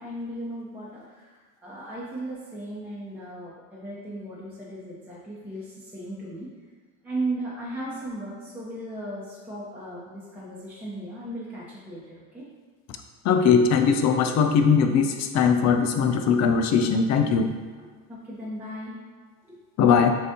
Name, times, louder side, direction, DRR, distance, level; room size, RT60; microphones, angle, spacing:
voice 1, 0.0-6.5 7.0-12.5 18.1-19.0 19.5-19.6, right 1 dB, 5° right, -8 dB, 0.9 m, -36 dB
voice 2, 13.2-17.5 19.8-20.1, left 6 dB, 45° left, 6 dB, 0.5 m, -20 dB
6.9 x 2.6 x 2.9 m, 1.5 s
supercardioid pair, 110°, 40 cm